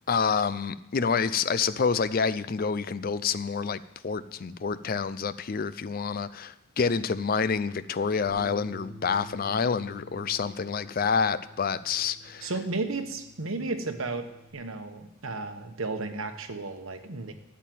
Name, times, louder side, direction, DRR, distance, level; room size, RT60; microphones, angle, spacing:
voice 1, 0.1-12.5, left 5 dB, 45° left, 0.4 m, -28 dB
Bass guitar, 8.3-14.5, equal, 25° left, 4.0 m, -50 dB
voice 2, 12.4-14.3 14.5-17.3, right 3 dB, 70° right, 1.2 m, -33 dB
12.5 x 7.4 x 9.2 m
head